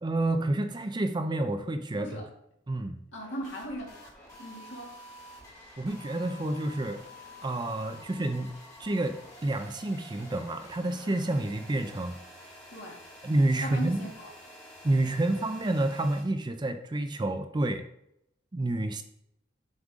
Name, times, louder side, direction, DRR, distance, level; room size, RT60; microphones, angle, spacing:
voice 1, 0.0-2.1 2.7-3.0 5.8-7.0 7.4-8.5 8.8-12.2 13.2-14.1 14.8-17.9 18.5-19.0, right 2 dB, 20° right, 7 dB, 0.4 m, -29 dB
voice 2, 3.1-3.9 4.4-5.2 12.7-13.0 13.6-14.3, equal, 65° left, -3 dB, 2.3 m, -38 dB
sound 1, 3.2-16.2, left 1 dB, 15° left, 1.7 m, -49 dB
7.3 x 5.1 x 3.7 m, 0.78 s
head